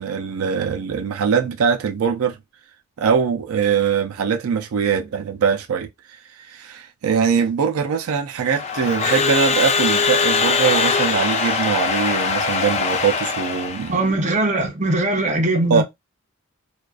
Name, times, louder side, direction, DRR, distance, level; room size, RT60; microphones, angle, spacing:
voice 1, 0.0-2.4 3.0-5.9 6.5-14.0 15.7-15.8, right 6 dB, 90° right, 0.4 m, -22 dB
Crowd / Alarm, 8.4-14.0, left 5 dB, 30° left, 0.3 m, -21 dB
voice 2, 13.9-15.8, right 2 dB, 35° right, 0.6 m, -20 dB
2.3 x 2.2 x 2.3 m
head